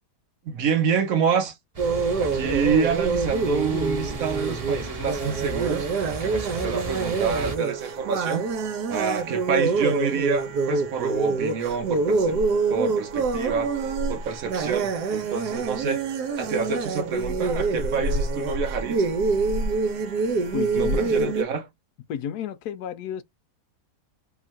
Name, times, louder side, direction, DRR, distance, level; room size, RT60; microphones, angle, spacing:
voice 1, 0.5-1.5 2.2-8.4 8.9-12.4 12.7-13.7 14.1-16.0 16.4-19.1 20.7-21.6, right 5 dB, 65° right, 1.1 m, -27 dB
sound 1, 1.7-7.6, right 1 dB, 30° right, 0.8 m, -35 dB
sound 2, 1.8-21.4, right 4 dB, 85° right, 1.4 m, -26 dB
voice 2, 20.5-21.3 22.1-23.2, left 9 dB, 75° left, 1.1 m, -31 dB
3.4 x 2.4 x 4.2 m
omnidirectional pair, 1.7 m